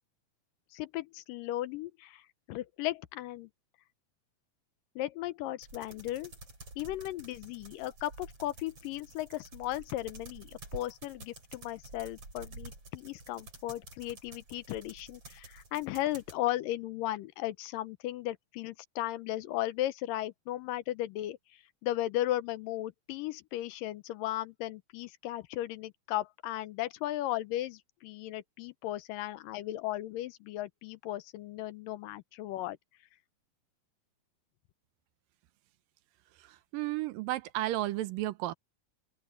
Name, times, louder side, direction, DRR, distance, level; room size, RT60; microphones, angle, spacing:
voice 1, 0.7-2.2 2.5-3.5 5.0-6.3 6.8-21.4 21.8-32.8, left 15 dB, 85° left, 2.4 m, -36 dB
sound 1, 5.6-16.4, right 2 dB, 40° right, 9.0 m, -50 dB
voice 2, 36.4-38.5, right 16 dB, 85° right, 2.5 m, -33 dB
open air
omnidirectional pair, 3.9 m